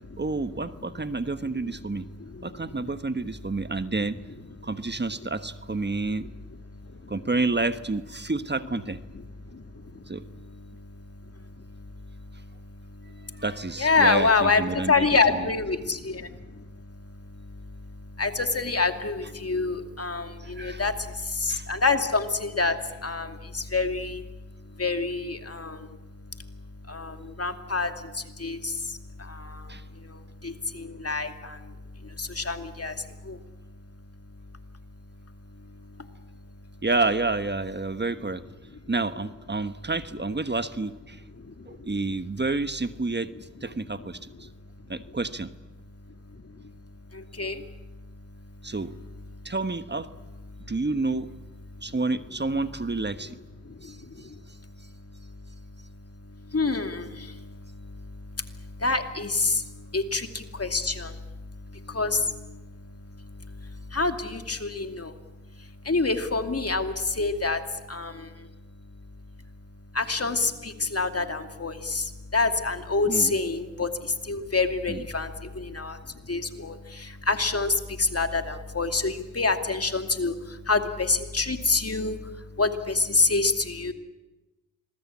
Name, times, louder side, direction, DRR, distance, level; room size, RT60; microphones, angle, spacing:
voice 1, 0.2-2.0 2.4-4.2 4.6-6.3 7.1-9.0 10.1-10.2 13.4-15.5 20.4-20.8 21.5-21.7 29.7-29.8 36.8-38.4 38.9-41.2 41.7-43.3 43.6-44.5 44.9-45.5 48.6-48.9 49.4-50.1 50.7-51.3 51.8-53.4 53.8-54.3 73.1-73.3 74.9-75.0, right 3 dB, 35° right, 11 dB, 1.3 m, -29 dB
voice 2, 2.1-3.3 4.6-4.7 6.2-6.3 6.7-7.1 9.3-13.4 13.8-33.8 34.3-34.5 35.5-36.7 41.4-42.1 43.3-43.4 44.0-44.1 44.4-44.9 46.1-48.7 49.3-49.5 50.5-50.7 51.7-52.0 53.2-53.3 53.6-69.0 69.9-83.9, left 3 dB, 50° left, 6 dB, 2.6 m, -29 dB
26.5 x 21.0 x 8.6 m, 1.1 s
cardioid pair, 40°, 30 cm